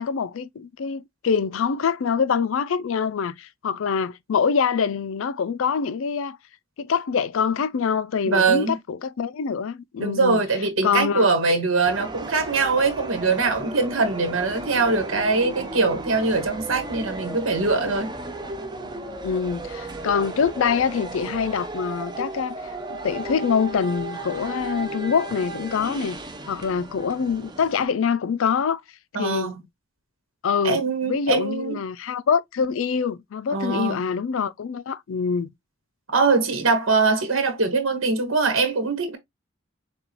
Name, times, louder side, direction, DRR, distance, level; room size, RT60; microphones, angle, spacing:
voice 1, 0.0-6.4 6.8-10.4 10.8-11.3 19.2-22.5 22.9-26.2 26.5-28.8 29.2-29.6 30.4-30.8 31.1-35.5, left 6 dB, 75° left, 0.4 m, -25 dB
voice 2, 8.2-8.8 10.0-18.1 29.1-29.5 30.6-31.7 33.5-34.0 36.1-39.2, right 4 dB, 75° right, 1.4 m, -22 dB
sound 1, 11.8-27.9, right 2 dB, 20° right, 0.7 m, -35 dB
6.7 x 2.4 x 2.9 m
head